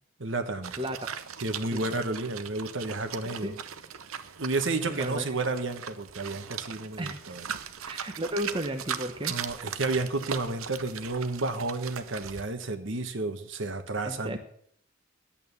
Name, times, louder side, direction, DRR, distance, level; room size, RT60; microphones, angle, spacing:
voice 1, 0.2-0.7 1.4-3.5 4.4-7.4 9.3-14.4, right 3 dB, 60° right, 8 dB, 1.3 m, -31 dB
sound 1, 0.6-12.4, right 8 dB, 80° right, 0.8 m, -39 dB
voice 2, 0.8-1.1 1.7-1.8 3.2-3.6 4.9-5.3 7.0-7.1 7.9-9.3 14.0-14.4, equal, 25° right, 5 dB, 0.8 m, -34 dB
11.0 x 8.7 x 7.1 m, 0.66 s
head